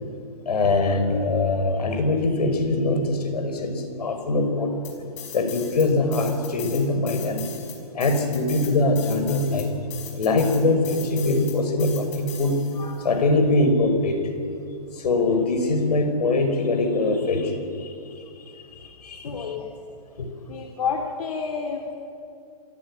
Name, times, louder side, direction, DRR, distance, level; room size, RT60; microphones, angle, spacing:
voice 1, 0.5-4.8 5.3-7.5 7.9-14.2 14.9-19.6 20.2-20.3, left 2 dB, 85° left, 7 dB, 5.4 m, -23 dB
sound 1, 4.8-5.9 6.1-12.9, left 9 dB, 50° left, 5.6 m, -39 dB
voice 2, 19.2-19.7 20.5-22.0, left 5 dB, 70° left, 1 dB, 2.9 m, -29 dB
27.0 x 16.0 x 9.8 m, 2.4 s
hypercardioid pair, 155°, 20 cm